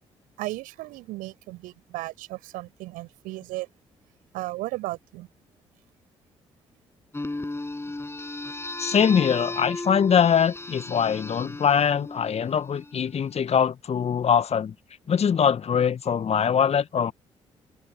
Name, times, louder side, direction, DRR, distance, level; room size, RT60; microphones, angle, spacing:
voice 1, 0.4-3.7 4.3-5.3, right 19 dB, 65° right, 7.5 m, -35 dB
sound 1, 7.1-13.2, left 2 dB, 15° left, 7.0 m, -35 dB
voice 2, 8.8-14.7 15.1-17.1, left 7 dB, 45° left, 1.7 m, -22 dB
figure-of-eight pair, 40°, 15 cm